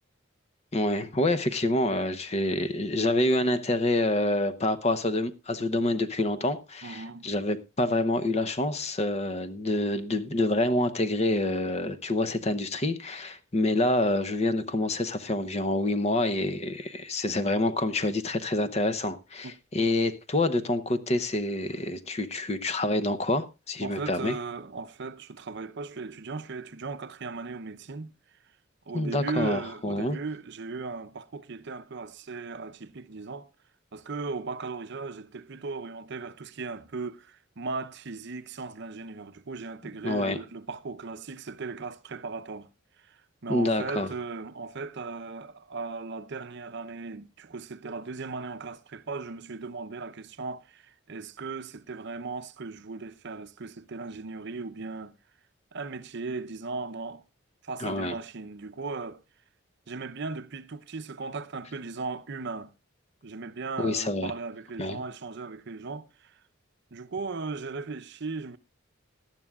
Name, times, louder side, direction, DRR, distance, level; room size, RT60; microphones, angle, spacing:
voice 1, 0.7-24.3 28.9-30.2 40.0-40.4 43.5-44.1 57.8-58.1 63.8-64.3 64.8-65.0, left 2 dB, 35° left, 0.8 m, -27 dB
voice 2, 6.8-7.3 19.4-20.0 23.8-28.1 28.9-33.5 33.9-42.7 43.0-55.1 55.7-57.2 57.6-59.2 59.9-62.7 63.2-66.4 66.9-68.6, right 4 dB, 60° right, 0.7 m, -37 dB
18.5 x 12.0 x 2.4 m
head